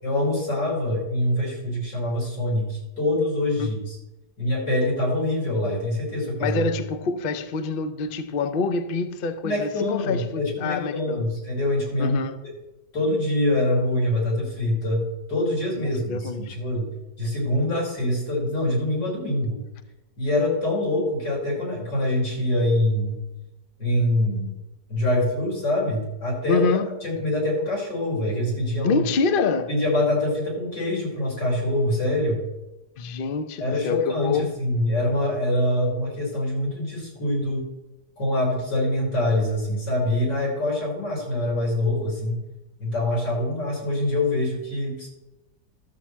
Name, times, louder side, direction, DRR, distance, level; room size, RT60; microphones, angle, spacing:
voice 1, 0.0-4.0 4.4-6.7 9.4-12.2 12.9-15.0 15.3-16.9 17.2-19.6 20.2-23.2 23.8-24.5 24.9-26.7 27.0-29.0 29.7-32.4 33.6-37.6 38.2-42.4 42.8-45.1, left 1 dB, 80° left, 4.4 m, -24 dB
voice 2, 6.4-11.3 12.0-12.4 15.8-16.6 26.5-26.9 28.8-29.7 33.0-34.5, left 4 dB, 65° left, 0.5 m, -26 dB
12.5 x 4.5 x 7.3 m
omnidirectional pair, 1.9 m